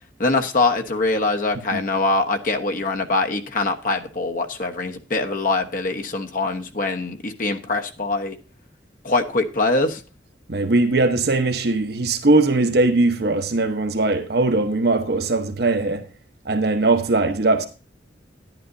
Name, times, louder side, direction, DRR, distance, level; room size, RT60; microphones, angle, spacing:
voice 1, 0.2-8.4 9.0-10.0, left 3 dB, 50° left, 1.1 m, -23 dB
voice 2, 10.5-16.1 16.4-17.7, right 2 dB, 60° right, 1.0 m, -20 dB
11.0 x 11.0 x 2.7 m
head